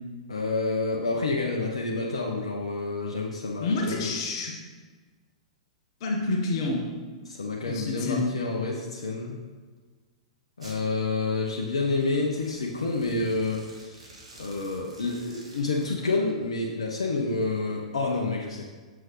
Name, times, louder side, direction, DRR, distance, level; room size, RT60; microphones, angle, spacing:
voice 1, 0.3-4.1 7.3-9.4 10.6-14.1 14.4-18.7, left 3 dB, 70° left, -1 dB, 0.8 m, -29 dB
voice 2, 3.6-4.6 6.0-6.9 7.7-8.4, left 2 dB, 50° left, 0 dB, 1.2 m, -28 dB
Domestic sounds home sounds, 10.6-10.8 11.8-15.9, right 2 dB, 75° right, 1.9 m, -50 dB
7.7 x 6.9 x 3.1 m, 1.4 s
figure-of-eight pair, 105°, 3 cm